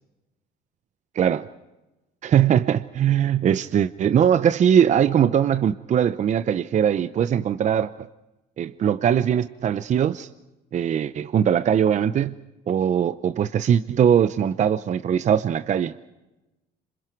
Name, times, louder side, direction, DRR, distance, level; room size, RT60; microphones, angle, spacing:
voice 1, 1.1-1.5 2.2-7.9 8.6-10.3 10.7-12.3 12.7-16.1, right 9 dB, 45° right, 0.7 m, -21 dB
28.0 x 26.0 x 4.6 m
cardioid pair, 110°, 17 cm